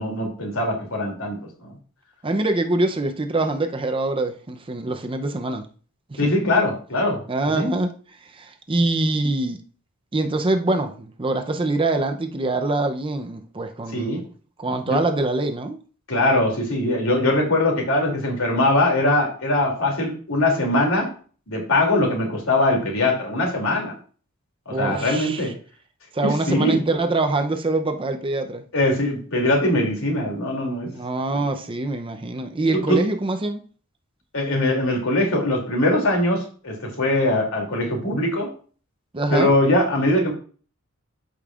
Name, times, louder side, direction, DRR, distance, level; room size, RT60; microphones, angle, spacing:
voice 1, 0.0-1.7 6.2-7.2 7.5-7.7 13.9-14.2 14.8-15.0 16.1-21.1 21.5-23.9 24.7-25.5 26.2-26.8 28.7-30.9 31.3-31.4 32.7-33.0 34.3-38.5 39.3-40.3, left 1 dB, 80° left, 2.7 m, -21 dB
voice 2, 2.2-5.7 6.1-6.3 7.3-7.9 8.4-9.6 10.1-14.2 14.6-15.8 24.7-25.5 26.1-28.6 30.9-33.6 39.1-39.5, right 2 dB, 25° right, 0.6 m, -24 dB
13.0 x 5.3 x 2.4 m
head